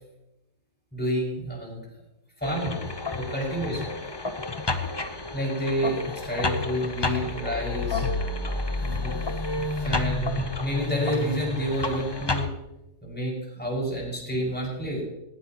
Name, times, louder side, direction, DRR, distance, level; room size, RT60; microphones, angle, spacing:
voice 1, 0.9-1.9 2.4-2.8 3.2-3.9 5.3-8.1 8.8-9.2 9.7-12.5 13.0-15.0, equal, 5° left, -4 dB, 6.0 m, -29 dB
sound 1, 2.4-12.5, left 3 dB, 20° left, 0.7 m, -30 dB
19.5 x 17.5 x 3.1 m, 0.90 s
omnidirectional pair, 1.7 m